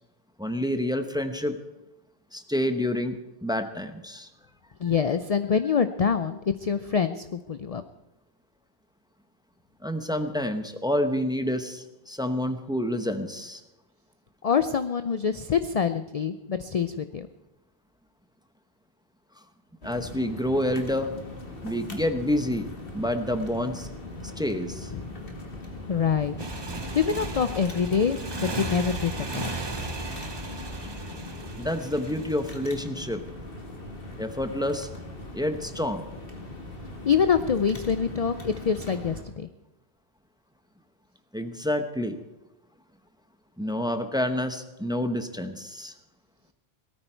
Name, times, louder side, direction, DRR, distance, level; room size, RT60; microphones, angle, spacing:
voice 1, 0.4-1.6 2.3-4.3 9.8-13.6 19.8-21.1 21.6-23.9 24.2-24.9 31.6-33.2 34.2-34.9 35.3-36.0 41.3-42.2 43.6-45.9, left 1 dB, 5° right, 8 dB, 0.9 m, -28 dB
voice 2, 4.8-7.8 14.4-17.3 24.2-24.3 24.9-25.0 25.9-26.4 26.9-29.8 37.0-39.5, left 6 dB, 45° left, 11 dB, 0.5 m, -25 dB
sound 1, 19.8-39.2, left 2 dB, 60° left, 2.1 m, -40 dB
Motorcycle, 26.4-32.8, right 3 dB, 25° right, 1.0 m, -36 dB
18.0 x 13.5 x 4.5 m, 0.97 s
omnidirectional pair, 1.1 m